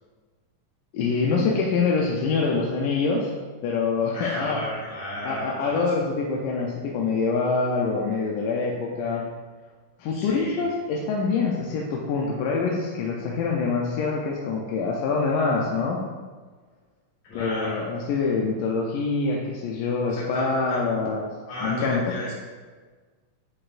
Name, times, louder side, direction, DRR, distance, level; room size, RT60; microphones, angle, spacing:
voice 1, 0.9-3.3 3.6-4.6 5.2-9.2 10.0-16.0 17.3-21.3 21.6-22.0, left 4 dB, 85° left, -1 dB, 2.2 m, -25 dB
voice 2, 4.1-5.8 10.1-10.7 17.3-17.8 20.1-20.9 21.5-22.3, left 1 dB, 60° left, -7 dB, 3.2 m, -34 dB
9.8 x 4.3 x 2.5 m, 1.4 s
omnidirectional pair, 3.6 m